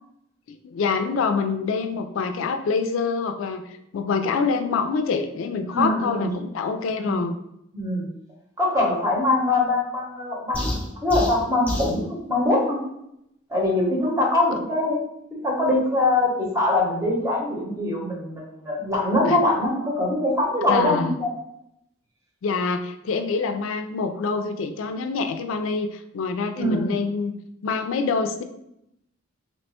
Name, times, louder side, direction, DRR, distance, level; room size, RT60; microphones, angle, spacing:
voice 1, 0.5-7.3 19.3-19.4 20.7-21.2 22.4-27.3 27.6-28.4, left 4 dB, 75° left, 7 dB, 0.3 m, -26 dB
voice 2, 5.7-6.3 7.0-7.3 7.7-8.1 8.6-12.8 13.5-15.0 15.3-21.3 26.5-27.0, left 2 dB, 15° right, -4 dB, 0.9 m, -23 dB
sound 1, 10.5-12.0, left 1 dB, 5° left, 0.5 m, -28 dB
3.0 x 2.2 x 4.1 m, 0.80 s
head